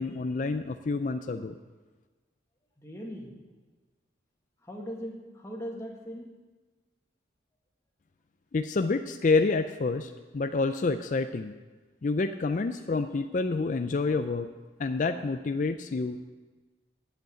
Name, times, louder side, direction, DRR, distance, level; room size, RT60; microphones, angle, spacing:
voice 1, 0.0-1.5 8.5-11.5 12.0-14.5 14.8-16.3, left 3 dB, 45° left, 8 dB, 0.4 m, -28 dB
voice 2, 2.8-3.3 4.6-6.3, equal, 15° left, -2 dB, 1.8 m, -39 dB
9.0 x 8.1 x 7.9 m, 1.3 s
head